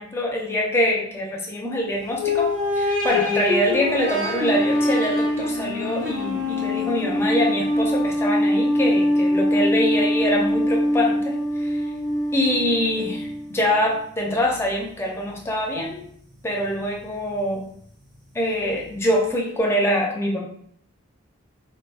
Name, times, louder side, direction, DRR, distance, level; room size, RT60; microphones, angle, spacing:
voice 1, 0.0-11.9 12.3-16.0 16.4-17.7 18.3-20.4, left 1 dB, 10° left, -1 dB, 0.4 m, -24 dB
sound 1, 2.1-13.7 14.3-14.4 15.4-15.5, left 1 dB, 45° right, 1.2 m, -23 dB
3.5 x 2.2 x 2.4 m, 0.64 s
head